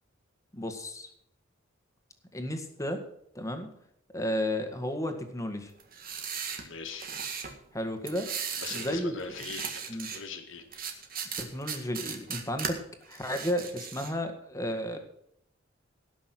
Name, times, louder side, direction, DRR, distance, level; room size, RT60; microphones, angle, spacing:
voice 1, 0.5-1.1 2.3-3.0 3.4-3.7 4.1-5.7 7.7-8.3 8.7-9.1 9.9-10.1 11.4-12.8 13.1-15.0, left 1 dB, 15° left, 6 dB, 1.8 m, -33 dB
sound 1, 5.8-7.5 8.0-9.0 9.2-10.2 10.7-12.7 13.1-14.1, right 7 dB, 50° right, 1.9 m, -37 dB
voice 2, 6.6-7.1 8.6-11.0, left 5 dB, 75° left, 5 dB, 2.0 m, -41 dB
18.0 x 6.3 x 6.2 m, 0.74 s
head